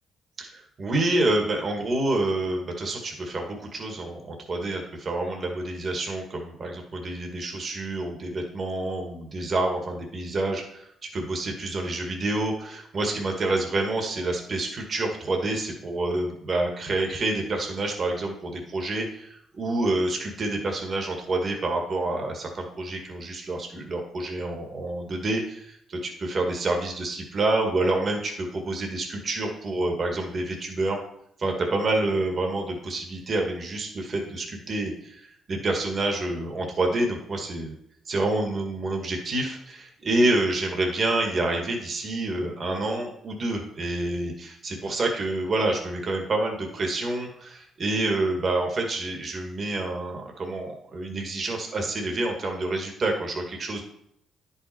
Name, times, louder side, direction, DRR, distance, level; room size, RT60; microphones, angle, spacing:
voice 1, 0.4-31.0 31.4-37.7 38.1-53.8, right 2 dB, 45° right, 2 dB, 1.8 m, -28 dB
10.0 x 5.7 x 4.4 m, 0.72 s
cardioid pair, 90°, 0 cm